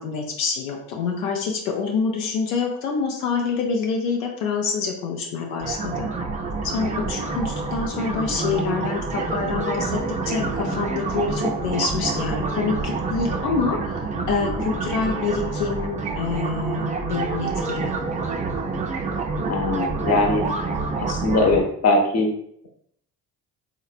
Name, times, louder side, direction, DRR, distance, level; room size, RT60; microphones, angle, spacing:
voice 1, 0.0-6.1 6.7-10.0 10.3-14.0 14.3-18.0, left 5 dB, 80° left, 1 dB, 0.5 m, -26 dB
sound 1, 5.6-21.6, right 3 dB, 20° right, 0.3 m, -27 dB
voice 2, 19.5-20.4 20.9-22.3, left 2 dB, 35° left, 2 dB, 0.7 m, -21 dB
3.1 x 2.0 x 2.3 m, 0.68 s
hypercardioid pair, 55°, 45 cm